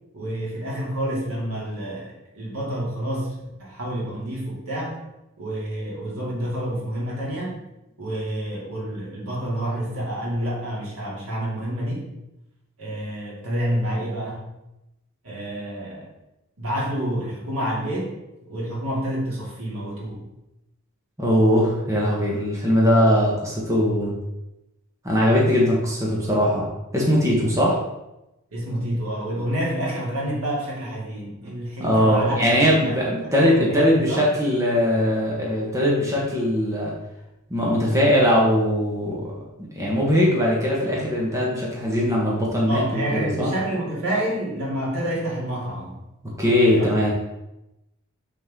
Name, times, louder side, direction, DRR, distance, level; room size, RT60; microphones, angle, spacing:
voice 1, 0.1-3.3 3.6-5.0 5.4-7.6 8.0-12.1 12.8-14.5 15.2-16.1 16.6-18.1 18.4-20.2 28.5-34.3 42.7-46.0 46.7-46.9, right 1 dB, 90° right, -5 dB, 2.9 m, -28 dB
voice 2, 21.2-24.1 25.0-26.7 26.9-27.8 31.8-36.9 37.5-39.3 39.7-42.8 43.1-43.5 46.2-47.1, equal, 15° right, -4 dB, 1.5 m, -20 dB
6.6 x 6.3 x 3.8 m, 0.92 s
head